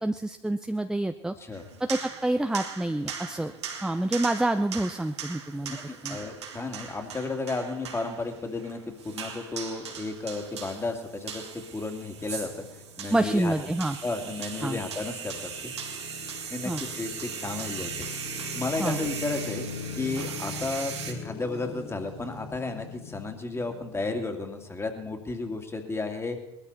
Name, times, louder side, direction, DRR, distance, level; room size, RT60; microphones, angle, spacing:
voice 1, 0.0-1.3 1.8-3.5 3.8-5.8 6.0-6.2 13.1-14.0 14.6-14.8 16.6-16.8 18.8-19.0, right 1 dB, 5° right, 8 dB, 0.7 m, -27 dB
sound 1, 1.5-21.1, right 6 dB, 85° right, 2.6 m, -39 dB
voice 2, 5.7-12.7 13.0-13.8 14.0-15.7 16.5-18.1 18.4-19.7 19.9-26.4, left 3 dB, 20° left, 5 dB, 2.5 m, -33 dB
sound 2, 12.2-25.5, left 5 dB, 55° left, 5.2 m, -42 dB
20.0 x 13.5 x 4.2 m, 0.88 s
hypercardioid pair, 75°, 14 cm